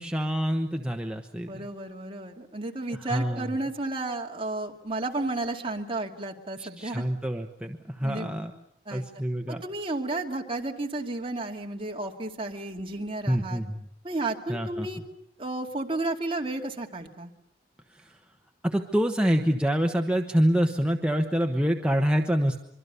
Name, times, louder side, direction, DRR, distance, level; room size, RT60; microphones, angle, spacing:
voice 1, 0.0-1.6 3.0-3.5 6.6-8.5 8.9-9.6 13.3-13.9 14.5-14.9 18.0-18.2 18.6-22.6, equal, 5° right, 3 dB, 1.1 m, -26 dB
voice 2, 1.5-7.0 8.0-8.3 8.9-9.0 9.5-13.6 14.0-15.0 15.4-17.3, right 2 dB, 30° right, 2 dB, 2.4 m, -32 dB
25.0 x 24.0 x 6.9 m, 0.75 s
head